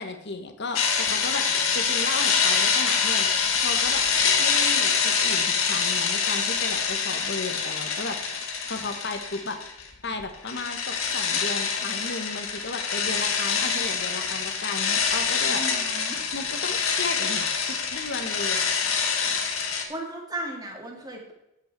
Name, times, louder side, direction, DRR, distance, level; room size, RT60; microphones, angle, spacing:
voice 1, 0.0-4.0 4.4-8.2 8.6-9.6 10.0-15.6 16.3-18.7, left 3 dB, 50° left, 7 dB, 1.3 m, -34 dB
sound 1, 0.7-9.9 10.1-19.8, left 6 dB, 70° left, 1.5 m, -25 dB
voice 2, 15.5-16.2 19.6-21.3, right 2 dB, 15° right, 1 dB, 1.9 m, -36 dB
8.9 x 8.4 x 4.6 m, 0.86 s
head